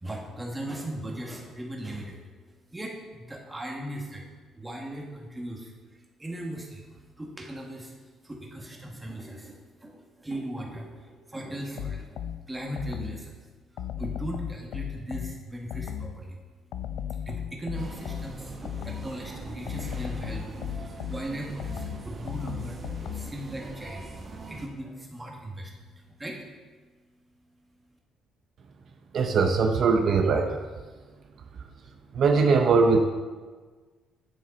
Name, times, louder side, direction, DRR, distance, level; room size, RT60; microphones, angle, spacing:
voice 1, 0.0-2.2 2.7-4.2 4.5-8.0 8.2-12.2 12.5-13.5 13.7-16.4 17.2-24.2 24.5-26.5, right 1 dB, 10° right, 0 dB, 1.3 m, -38 dB
sound 1, 11.8-13.3 13.8-16.2 16.7-19.2 19.7-23.4, left 9 dB, 80° left, 0.4 m, -36 dB
sound 2, 17.7-24.7, right 3 dB, 30° right, 0.9 m, -42 dB
voice 2, 29.1-30.6 32.1-33.0, right 4 dB, 45° right, 4 dB, 0.6 m, -21 dB
10.0 x 6.0 x 4.1 m, 1.4 s
cardioid pair, 160°, 0 cm